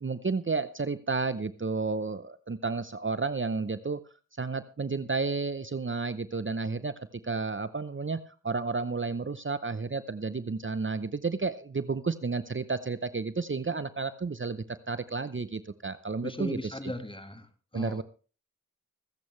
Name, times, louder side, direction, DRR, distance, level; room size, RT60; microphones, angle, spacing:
voice 1, 0.0-4.0 4.4-6.9 7.2-16.9 17.7-18.0, right 4 dB, 40° right, 14 dB, 0.7 m, -32 dB
voice 2, 16.2-17.5 17.7-18.0, left 1 dB, 15° left, 8 dB, 1.8 m, -37 dB
25.0 x 8.5 x 3.3 m, 0.36 s
wide cardioid pair, 50°, 32 cm